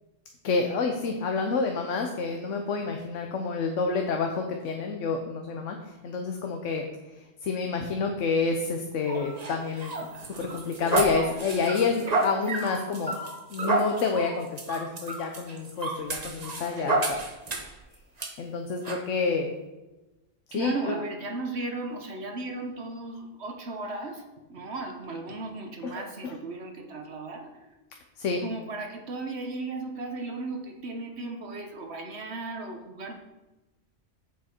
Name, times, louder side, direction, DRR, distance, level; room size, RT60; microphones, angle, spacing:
voice 1, 0.4-6.8 7.4-13.1 13.5-17.2 18.4-19.5 20.5-20.9 25.8-26.4 28.2-28.4, left 4 dB, 75° left, 4 dB, 1.1 m, -29 dB
sound 1, 9.1-17.8 18.2-18.3 18.8-19.0, right 2 dB, 35° right, 1.0 m, -31 dB
voice 2, 20.5-27.7 28.4-33.1, right 3 dB, 60° right, 4 dB, 1.2 m, -36 dB
8.5 x 7.3 x 4.4 m, 1.1 s
omnidirectional pair, 1.3 m